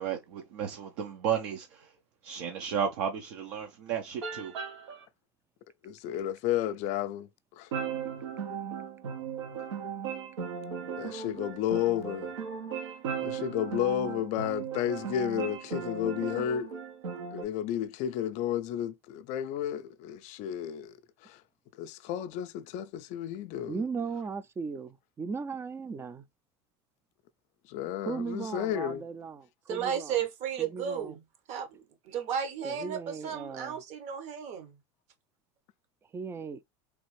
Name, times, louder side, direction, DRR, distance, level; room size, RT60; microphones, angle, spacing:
voice 1, 0.0-1.9 2.2-4.5, right 8 dB, 70° right, 0.7 m, -33 dB
sound 1, 4.2-5.0 7.7-17.4, right 7 dB, 90° right, 1.0 m, -37 dB
voice 2, 5.8-7.3 7.6-7.7 11.0-12.3 13.2-16.7 17.3-21.0 21.2-21.4 21.8-23.8 27.7-29.0, left 11 dB, 55° left, 0.4 m, -32 dB
voice 3, 23.7-26.3 28.0-30.2 30.6-31.2 32.6-33.8 36.1-36.6, right 5 dB, 15° right, 0.4 m, -37 dB
voice 4, 29.7-31.2 31.5-31.8 32.0-34.8, right 8 dB, 55° right, 1.0 m, -34 dB
3.3 x 2.4 x 3.1 m
hypercardioid pair, 100°, 15 cm